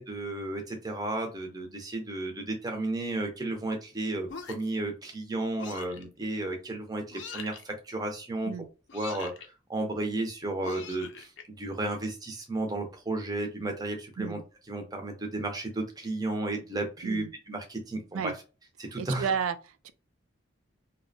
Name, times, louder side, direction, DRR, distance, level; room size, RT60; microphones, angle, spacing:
voice 1, 0.0-8.5 8.9-9.3 9.7-14.4 14.7-18.3 18.8-19.3, right 2 dB, 20° right, 0.5 m, -33 dB
sound 1, 4.3-4.8 5.6-6.0 7.1-7.6 8.9-9.5 10.6-11.4, left 5 dB, 60° left, 0.4 m, -42 dB
voice 2, 19.0-19.9, right 7 dB, 85° right, 0.3 m, -32 dB
2.7 x 2.1 x 2.6 m
head